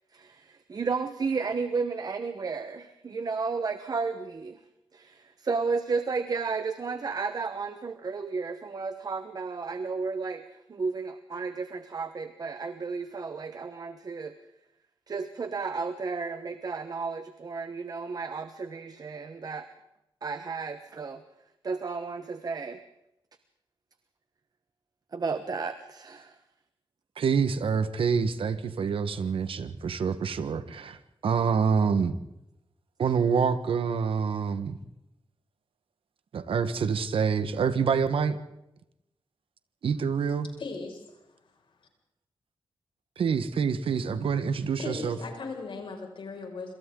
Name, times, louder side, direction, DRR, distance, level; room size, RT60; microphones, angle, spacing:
voice 1, 0.1-4.6 4.9-14.3 15.1-19.7 20.2-21.2 21.6-22.8 25.1-26.4, right 4 dB, 45° right, 9 dB, 1.2 m, -33 dB
voice 2, 27.2-32.2 33.0-34.8 36.3-38.4 39.8-40.5 43.2-45.2, right 6 dB, 85° right, 11 dB, 1.4 m, -26 dB
voice 3, 40.6-41.2 41.8-41.9 44.8-46.7, left 3 dB, 70° left, 2 dB, 5.9 m, -38 dB
27.5 x 26.5 x 3.9 m, 0.86 s
wide cardioid pair, 120°, 9 cm